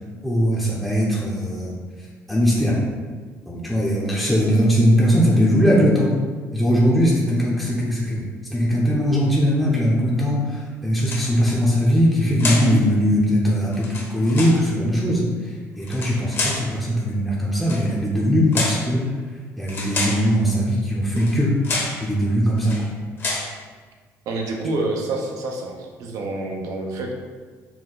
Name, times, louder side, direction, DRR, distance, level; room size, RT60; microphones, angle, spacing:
voice 1, 0.2-1.7 2.3-2.8 3.5-6.2 6.5-19.1 19.6-21.6 22.0-22.9, equal, ahead, -6 dB, 0.7 m, -20 dB
sound 1, 11.0-11.5 12.4-12.7 13.7-14.6 15.8-16.7 17.6-17.9 18.5-18.9 19.7-20.3 21.1-21.4 21.6-22.0 22.6-22.8 23.2-23.5, left 2 dB, 40° left, 1.0 m, -27 dB
voice 2, 24.3-27.1, right 2 dB, 70° right, 1 dB, 0.7 m, -27 dB
4.4 x 2.2 x 3.9 m, 1.5 s
cardioid pair, 100°, 6 cm